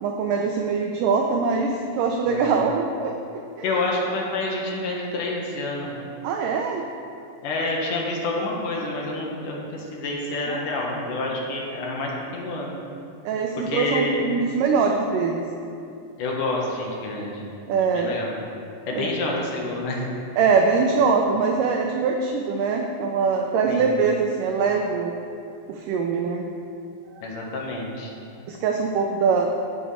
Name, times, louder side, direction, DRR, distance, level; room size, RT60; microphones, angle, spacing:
voice 1, 0.0-3.1 3.6-3.7 6.2-6.8 10.5-10.6 13.3-15.4 17.7-18.1 19.0-19.1 20.4-25.1 25.7-26.4 28.5-29.5, right 5 dB, 85° right, 2 dB, 1.8 m, -23 dB
voice 2, 3.6-5.9 7.4-12.8 13.7-14.2 16.2-17.4 17.9-18.4 18.9-20.1 23.7-23.9 27.2-28.1, left 2 dB, 65° left, -2 dB, 2.6 m, -28 dB
15.0 x 5.7 x 4.3 m, 2.6 s
omnidirectional pair, 4.5 m